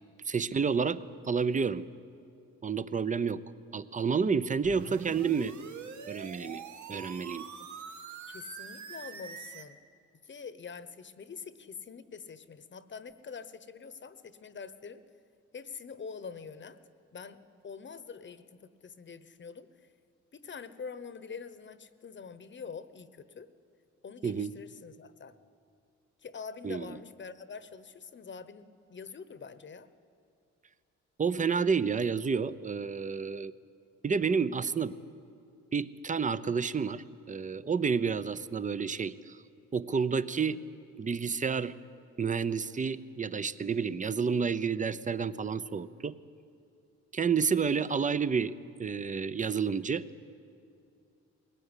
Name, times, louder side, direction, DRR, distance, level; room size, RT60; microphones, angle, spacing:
voice 1, 0.2-1.8 2.6-3.4 3.7-5.5 6.1-6.6 6.9-7.5 24.2-24.5 26.6-26.9 31.2-33.5 34.0-35.0 35.7-39.4 39.7-40.6 41.0-41.7 42.2-46.2 47.1-48.5 48.8-50.0, right 5 dB, 25° right, 15 dB, 0.7 m, -30 dB
sound 1, 4.6-9.6, right 6 dB, 70° right, 1.6 m, -44 dB
voice 2, 8.3-9.8 10.2-15.0 15.5-16.8 17.1-19.9 20.3-23.5 24.0-25.4 26.2-29.9 47.9-48.0, left 5 dB, 40° left, 13 dB, 1.1 m, -45 dB
21.5 x 18.0 x 9.8 m, 2.5 s
cardioid pair, 90°, 30 cm